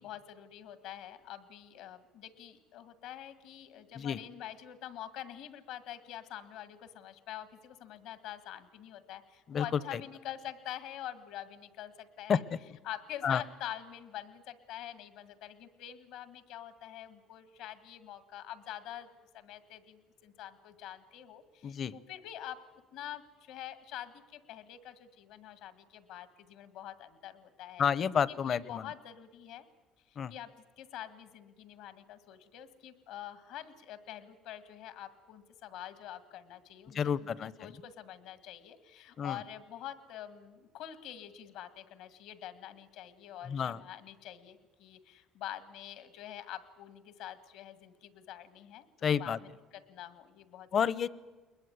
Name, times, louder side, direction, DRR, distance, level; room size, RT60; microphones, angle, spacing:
voice 1, 0.0-12.4 12.8-19.1 19.3-22.6 22.9-27.9 28.3-29.6 30.1-50.7, left 11 dB, 80° left, 12 dB, 1.8 m, -46 dB
voice 2, 9.5-10.0 12.3-12.6 13.2-13.4 21.6-21.9 27.8-28.9 30.2-30.3 36.9-37.8 39.2-39.4 43.5-43.8 49.0-49.4 50.7-51.1, left 7 dB, 45° left, 20 dB, 0.7 m, -30 dB
21.0 x 21.0 x 9.6 m, 1.3 s
cardioid pair, 110°, 0 cm